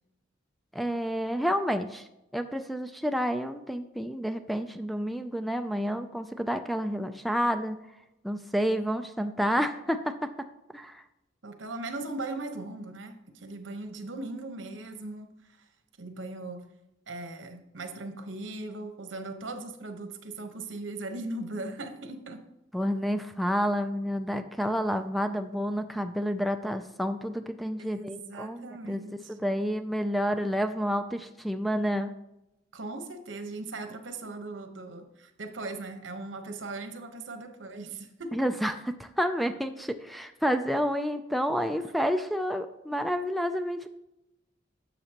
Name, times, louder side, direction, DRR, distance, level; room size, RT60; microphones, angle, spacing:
voice 1, 0.7-2.1 2.3-7.8 8.2-10.3 10.7-11.0 22.7-32.1 38.3-43.9, equal, ahead, 8 dB, 0.3 m, -29 dB
voice 2, 11.4-15.3 15.6-15.7 16.0-16.6 17.1-22.4 27.8-29.3 32.7-38.3, right 2 dB, 80° right, 6 dB, 1.0 m, -39 dB
11.5 x 7.1 x 2.9 m, 0.92 s
head